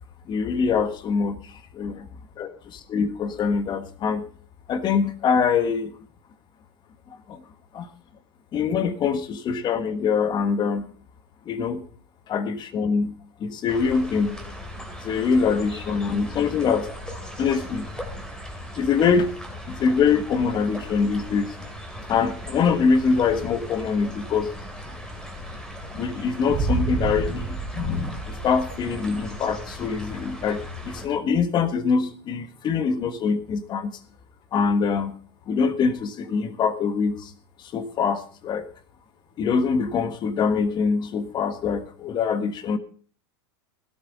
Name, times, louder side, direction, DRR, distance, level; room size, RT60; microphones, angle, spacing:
voice 1, 0.3-2.1 2.4-4.3 4.7-5.9 7.3-7.4 7.7-7.9 8.5-10.9 11.4-11.8 12.3-13.1 13.4-14.5 15.0-17.9 18.8-19.3 19.7-21.6 22.1-24.5 24.9-25.0 25.9-33.9 34.5-35.1 35.5-37.3 37.7-38.7 39.4-42.8, left 5 dB, 35° left, 10 dB, 1.5 m, -24 dB
sound 1, 13.7-31.1, left 1 dB, 5° left, 2.8 m, -38 dB
Boom, 26.5-29.5, right 4 dB, 35° right, 4.2 m, -29 dB
17.0 x 12.5 x 3.7 m, 0.42 s
hypercardioid pair, 115°, 13 cm